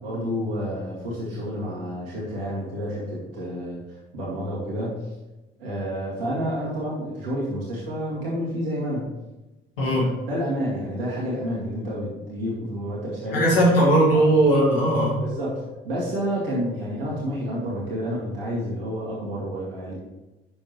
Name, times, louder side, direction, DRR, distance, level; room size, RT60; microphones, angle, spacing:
voice 1, 0.0-3.8 4.1-5.0 5.6-9.1 9.8-13.5 14.1-14.3 15.2-19.9, equal, 75° right, -6 dB, 2.1 m, -29 dB
voice 2, 13.3-15.2, right 1 dB, 80° left, -4 dB, 2.0 m, -18 dB
8.5 x 6.8 x 3.1 m, 1.0 s
figure-of-eight pair, 50°, 29 cm